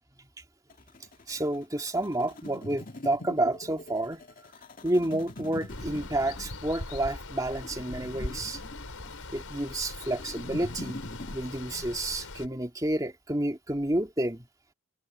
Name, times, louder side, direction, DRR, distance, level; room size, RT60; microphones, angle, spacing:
sound 1, 0.7-11.4, left 1 dB, 40° left, 2.1 m, -43 dB
voice 1, 1.3-4.2 4.8-8.6 9.3-11.0 11.3-14.4, right 1 dB, 15° right, 2.3 m, -30 dB
Water, 5.7-12.5, left 2 dB, 80° left, 4.2 m, -41 dB
head